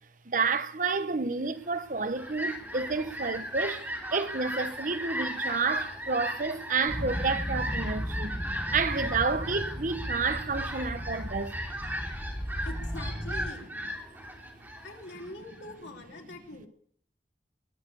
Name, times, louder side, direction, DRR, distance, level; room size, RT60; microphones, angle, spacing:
voice 1, 0.3-8.4 8.7-11.6, right 4 dB, 50° right, 1.0 m, -30 dB
Fowl, 1.8-15.7, equal, 10° right, 3.3 m, -37 dB
sound 1, 6.9-13.5, equal, 5° left, 1.1 m, -36 dB
voice 2, 12.6-13.7 14.8-16.7, left 2 dB, 90° left, 3.2 m, -44 dB
21.5 x 7.4 x 8.4 m
head